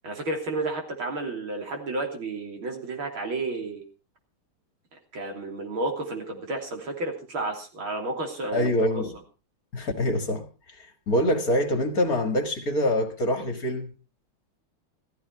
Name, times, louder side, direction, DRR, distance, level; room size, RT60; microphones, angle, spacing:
voice 1, 0.0-3.8 5.1-9.0, right 2 dB, 70° right, 3.9 m, -31 dB
voice 2, 8.5-9.1 9.7-10.5 10.8-13.9, left 1 dB, 45° left, 2.2 m, -25 dB
15.0 x 13.5 x 4.6 m
omnidirectional pair, 2.4 m